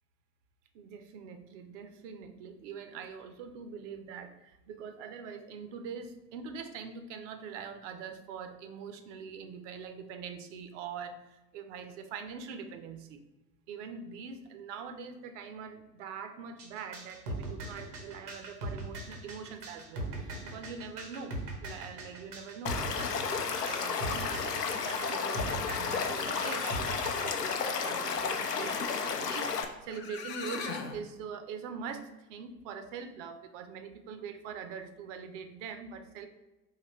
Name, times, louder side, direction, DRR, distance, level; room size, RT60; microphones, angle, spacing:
voice 1, 0.7-13.2 13.7-36.3, right 6 dB, 50° right, 8 dB, 0.7 m, -43 dB
sound 1, 16.6-27.3, right 1 dB, 75° right, 1.1 m, -40 dB
Stream / Liquid, 22.7-29.7, left 5 dB, 85° left, 0.6 m, -32 dB
sound 2, 29.6-29.7 29.9-31.0, left 6 dB, 25° left, 0.4 m, -39 dB
4.1 x 2.8 x 4.2 m, 1.0 s
figure-of-eight pair, 80°, 47 cm